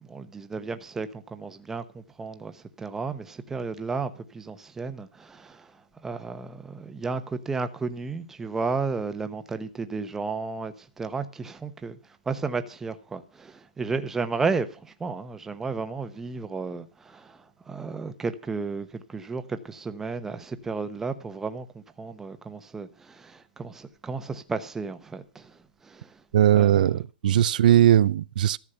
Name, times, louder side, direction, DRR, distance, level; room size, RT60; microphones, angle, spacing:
voice 1, 0.1-5.7 6.0-12.0 12.3-17.4 17.7-25.5 25.8-26.1 26.5-26.9, right 4 dB, 10° right, 1.0 m, -33 dB
voice 2, 26.3-28.6, right 11 dB, 60° right, 0.6 m, -19 dB
13.5 x 7.3 x 7.9 m
hypercardioid pair, 160°, 5 cm